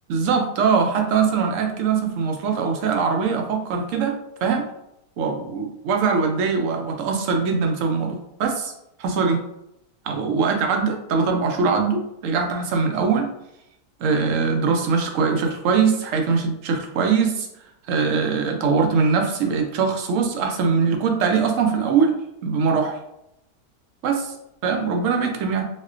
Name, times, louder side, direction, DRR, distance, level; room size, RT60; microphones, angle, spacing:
voice 1, 0.1-4.7 5.2-8.7 9.0-9.4 10.0-13.3 14.0-17.5 17.9-22.1 22.4-23.0 24.0-24.4 24.6-25.6, right 5 dB, 70° right, 3 dB, 0.7 m, -22 dB
4.1 x 2.1 x 2.4 m, 0.81 s
omnidirectional pair, 1.8 m